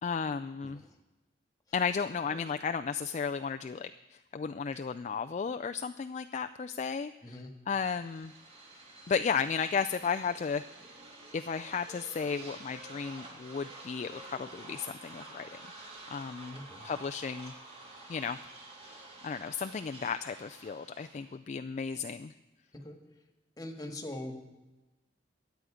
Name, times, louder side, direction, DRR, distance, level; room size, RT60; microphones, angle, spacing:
voice 1, 0.0-0.8 1.7-7.1 7.7-8.3 9.1-10.6 11.3-16.6 16.8-17.5 18.1-18.4 18.8-22.3, left 6 dB, 40° left, 9 dB, 0.3 m, -34 dB
voice 2, 0.6-0.9 2.3-2.4 7.2-7.5 16.5-16.9 22.7-23.0 23.6-24.4, left 1 dB, 20° left, 4 dB, 1.6 m, -42 dB
sound 1, 7.8-21.4, right 2 dB, 35° right, 2.9 m, -50 dB
22.5 x 8.3 x 5.0 m, 1.1 s
head